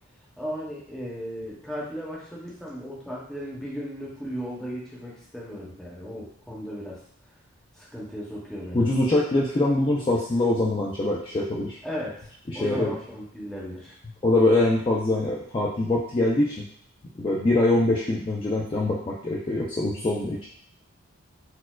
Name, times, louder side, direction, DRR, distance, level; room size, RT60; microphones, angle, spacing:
voice 1, 0.4-7.0 7.8-8.8 11.8-12.1 12.5-13.9, equal, ahead, -6 dB, 0.7 m, -36 dB
voice 2, 8.7-11.8 12.5-12.9 14.2-16.6 17.2-20.5, left 2 dB, 25° left, -5 dB, 0.3 m, -23 dB
4.2 x 2.3 x 2.3 m, 0.62 s
head